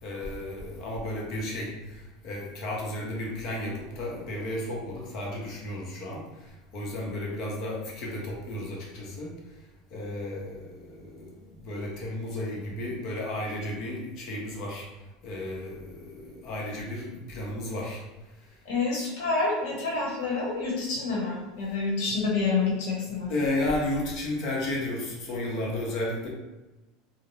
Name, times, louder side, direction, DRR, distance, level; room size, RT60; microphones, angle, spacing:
voice 1, 0.0-9.3 9.9-14.9 15.2-18.0 23.3-26.3, left 1 dB, 45° left, -2 dB, 0.7 m, -33 dB
voice 2, 18.6-23.3, left 4 dB, 70° left, -4 dB, 1.0 m, -28 dB
2.5 x 2.0 x 3.0 m, 1.1 s
supercardioid pair, 160°, 0 cm